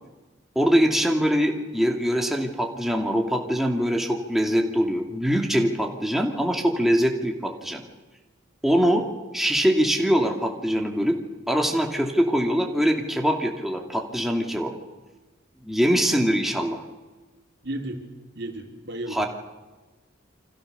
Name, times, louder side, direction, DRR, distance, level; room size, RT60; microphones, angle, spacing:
voice 1, 0.5-7.8 8.6-9.0 9.3-11.2 11.5-14.7 15.6-16.8 19.1-19.2, equal, ahead, 1 dB, 2.6 m, -23 dB
voice 2, 17.6-18.0 18.4-19.3, right 1 dB, 60° right, 4 dB, 3.8 m, -33 dB
29.5 x 26.0 x 6.9 m, 1.2 s
head